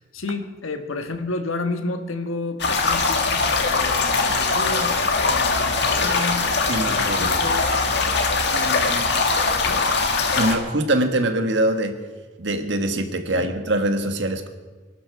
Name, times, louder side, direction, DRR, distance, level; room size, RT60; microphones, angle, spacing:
voice 1, 0.0-7.8 8.5-9.4 9.6-9.9 13.3-13.5, left 2 dB, 90° left, 7 dB, 1.5 m, -31 dB
sound 1, 2.6-10.5, left 4 dB, 55° left, 2.0 m, -21 dB
voice 2, 6.7-7.4 10.3-11.9 12.4-14.5, right 1 dB, 60° right, 6 dB, 1.6 m, -23 dB
24.0 x 12.0 x 4.7 m, 1.3 s
head